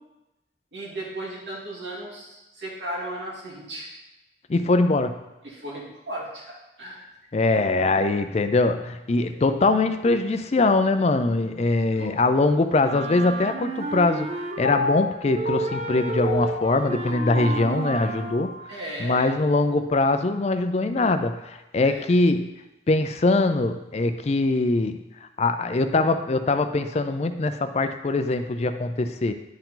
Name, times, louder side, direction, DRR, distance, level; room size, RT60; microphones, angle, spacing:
voice 1, 0.7-3.9 5.4-7.1 11.6-12.1 18.7-19.3 21.8-22.1, right 1 dB, 85° right, -4 dB, 2.4 m, -36 dB
voice 2, 4.5-5.2 7.3-18.5 19.0-22.5 22.9-25.0 25.4-29.3, left 2 dB, 35° left, 9 dB, 0.4 m, -22 dB
Wind instrument woodwind instrument, 12.8-15.0 15.3-18.4, right 3 dB, 35° right, 0.6 m, -31 dB
Piano, 14.6-18.7 19.2-19.3, left 3 dB, 70° left, 0.8 m, -32 dB
10.5 x 4.6 x 3.8 m, 0.98 s
head